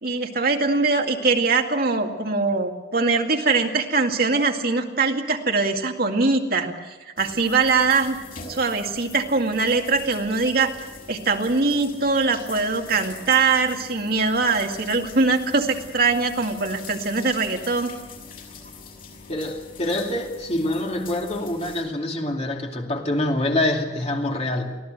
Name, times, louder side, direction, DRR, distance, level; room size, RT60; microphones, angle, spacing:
voice 1, 0.0-6.7 7.2-8.2 8.5-10.7 11.1-17.9, right 4 dB, 60° right, 2.2 m, -22 dB
sound 1, 7.2-21.8, left 5 dB, 55° left, 6.4 m, -43 dB
voice 2, 19.3-24.8, left 1 dB, 40° left, 2.6 m, -25 dB
24.0 x 16.5 x 8.0 m
head